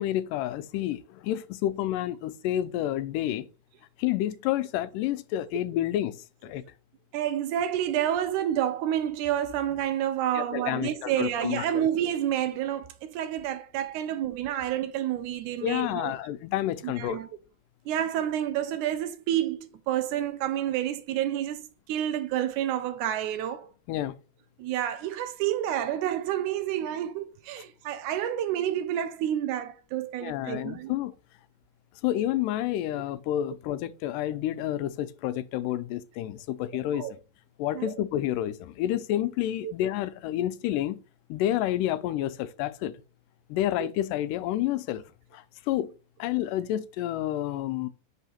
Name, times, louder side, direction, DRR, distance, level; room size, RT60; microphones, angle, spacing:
voice 1, 0.0-3.5 4.0-6.6 10.4-11.9 15.6-17.2 23.9-24.1 30.2-31.1 32.0-37.1 37.6-41.0 41.3-43.0 43.5-45.0 45.3-45.9 46.2-47.9, left 13 dB, 85° left, 2.2 m, -29 dB
voice 2, 7.1-16.1 16.8-17.3 17.9-23.7 24.6-30.9 36.7-37.1 37.7-37.9 39.6-39.7, right 11 dB, 80° right, 1.9 m, -29 dB
5.5 x 3.5 x 5.8 m
omnidirectional pair, 3.7 m